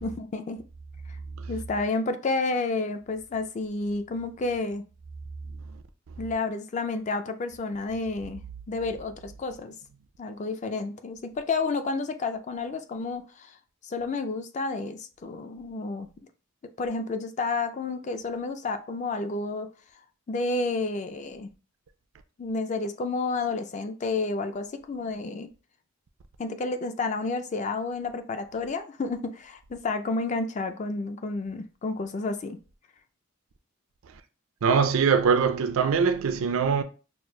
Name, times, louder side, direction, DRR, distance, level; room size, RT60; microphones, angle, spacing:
voice 1, 0.0-0.6 1.5-4.8 6.2-9.7 10.2-13.6 13.8-16.1 16.8-19.7 20.3-21.5 22.4-25.5 26.4-32.6, left 3 dB, 35° left, 0.3 m, -30 dB
voice 2, 34.6-36.8, right 6 dB, 70° right, 0.4 m, -22 dB
6.0 x 2.3 x 2.2 m
head